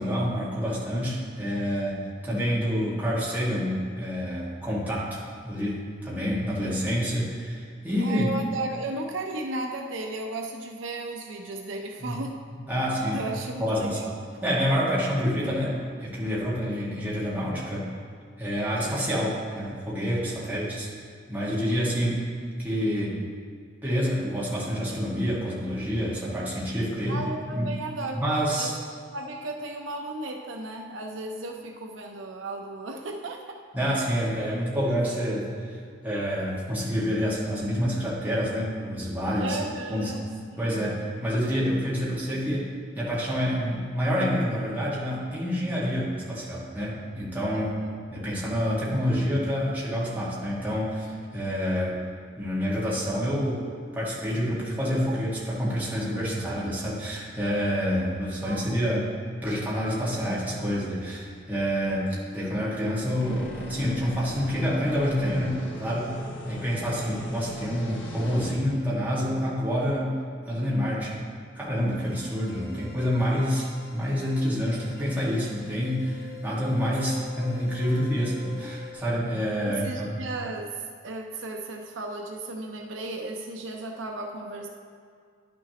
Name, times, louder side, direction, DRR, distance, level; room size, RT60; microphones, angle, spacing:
voice 1, 0.0-8.3 12.0-12.2 12.7-13.2 13.6-14.0 14.4-17.9 18.4-20.9 21.3-22.3 22.6-23.2 23.8-27.2 27.5-27.8 28.1-28.7 33.7-35.8 36.0-39.6 39.9-40.1 40.6-47.7 48.1-52.0 52.4-53.6 53.9-59.1 59.4-66.1 66.5-70.1 70.5-71.2 71.5-80.2, equal, 10° right, -8 dB, 1.7 m, -28 dB
voice 2, 8.0-12.3 13.1-14.1 20.4-20.5 27.1-28.2 28.6-28.7 29.1-33.6 39.4-40.2 47.6-47.9 58.4-58.7 72.6-72.9 79.6-80.7 81.0-84.7, right 2 dB, 75° right, 2 dB, 0.6 m, -35 dB
sound 1, 63.2-68.5, left 1 dB, 75° left, 1.2 m, -38 dB
sound 2, 72.0-78.9, left 8 dB, 55° left, 1.1 m, -45 dB
10.5 x 6.1 x 2.9 m, 2.1 s
head